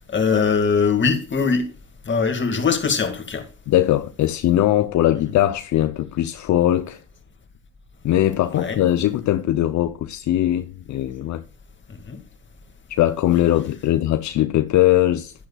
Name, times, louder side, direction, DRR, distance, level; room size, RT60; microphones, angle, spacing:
voice 1, 0.1-1.7 2.1-3.4 8.5-8.8 12.1-12.2, left 5 dB, 40° left, 2.1 m, -21 dB
voice 2, 3.7-7.0 8.0-11.4 12.9-15.3, left 13 dB, 70° left, 0.6 m, -20 dB
10.5 x 10.5 x 2.3 m
cardioid pair, 90°, 30 cm